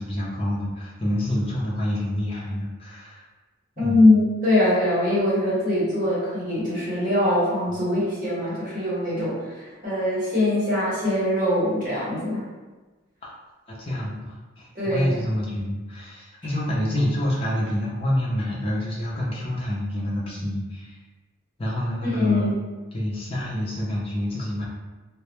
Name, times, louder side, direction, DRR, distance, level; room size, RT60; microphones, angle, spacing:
voice 1, 0.0-3.2 3.8-4.0 7.7-7.8 13.2-13.3 13.7-21.0 21.6-22.5 22.9-24.6, left 1 dB, 25° left, -5 dB, 0.5 m, -27 dB
voice 2, 3.8-12.4 14.7-15.1 22.0-22.6, left 1 dB, 40° right, -9 dB, 1.0 m, -22 dB
2.1 x 2.0 x 2.9 m, 1.2 s
head